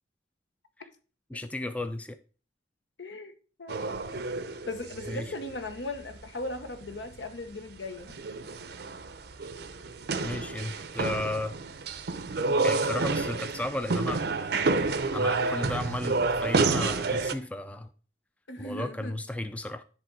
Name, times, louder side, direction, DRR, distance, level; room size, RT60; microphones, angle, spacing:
voice 1, 1.3-2.2 5.1-5.3 10.2-11.6 12.6-14.2 15.1-17.9 18.6-19.8, left 1 dB, 10° left, 10 dB, 0.3 m, -34 dB
voice 2, 3.0-3.3 3.6-3.9 4.7-8.2 18.5-19.2, left 2 dB, 75° left, 9 dB, 0.9 m, -38 dB
sound 1, 3.7-6.2 6.6-6.7 6.8-7.2 7.5-7.6 8.0-17.3, right 3 dB, 60° right, 0.6 m, -29 dB
10.0 x 3.5 x 4.4 m, 0.38 s
head